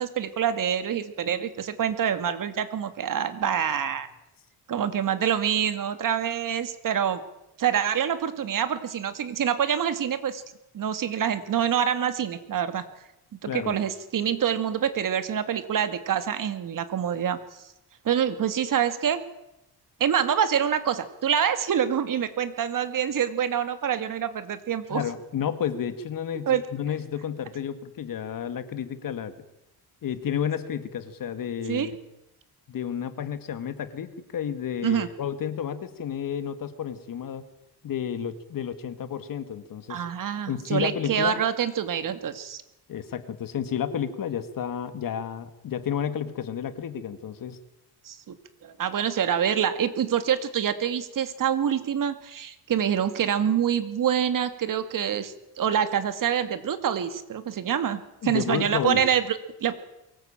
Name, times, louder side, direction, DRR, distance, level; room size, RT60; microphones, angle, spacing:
voice 1, 0.0-4.1 4.7-7.2 7.6-10.4 10.7-12.8 13.4-17.4 18.0-19.2 20.0-25.0 26.5-26.6 31.7-31.9 34.8-35.1 39.9-42.6 48.0-48.4 48.6-59.7, right 8 dB, 55° right, 10 dB, 2.3 m, -26 dB
voice 2, 24.9-29.3 30.0-32.0 32.7-37.4 37.8-40.0 40.5-41.4 42.9-47.6 58.2-59.0, left 8 dB, 55° left, 11 dB, 2.2 m, -31 dB
23.5 x 19.5 x 9.0 m, 0.90 s
cardioid pair, 135°, 39 cm